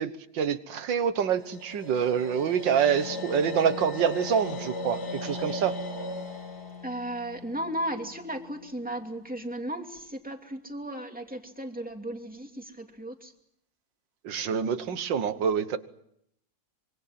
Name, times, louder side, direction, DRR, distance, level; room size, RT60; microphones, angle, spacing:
voice 1, 0.0-5.7 14.2-15.8, right 7 dB, 85° right, 12 dB, 2.0 m, -26 dB
sound 1, 1.3-8.5, left 2 dB, 65° left, 5.5 m, -37 dB
voice 2, 6.8-13.3, right 1 dB, 5° right, 3 dB, 2.7 m, -35 dB
25.5 x 24.5 x 7.6 m, 0.74 s
omnidirectional pair, 1.9 m